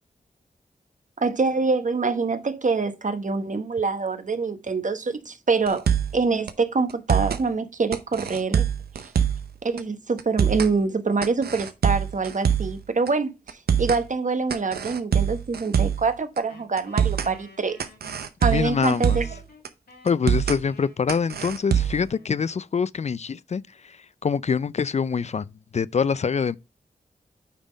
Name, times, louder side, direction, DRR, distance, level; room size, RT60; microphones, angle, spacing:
voice 1, 1.2-5.8 6.1-8.6 9.6-17.8 18.4-19.2, right 4 dB, 55° right, 1.1 m, -25 dB
sound 1, 5.7-6.2 6.5-6.6 6.9-7.4 7.9-9.5 9.8-9.9 10.2-10.7 11.2-12.8 13.1-13.2 13.5-14.0 14.5-16.1 16.4-16.5 16.8-17.3 17.8-19.4 19.6-19.7 20.1-20.6 21.1-22.1, right 8 dB, 90° right, 0.7 m, -24 dB
Wind instrument woodwind instrument, 16.5-22.8, left 3 dB, 85° left, 2.5 m, -51 dB
voice 2, 18.5-19.2 20.0-26.6, left 6 dB, 45° left, 0.4 m, -25 dB
8.9 x 3.6 x 5.1 m
cardioid pair, 40°, 16 cm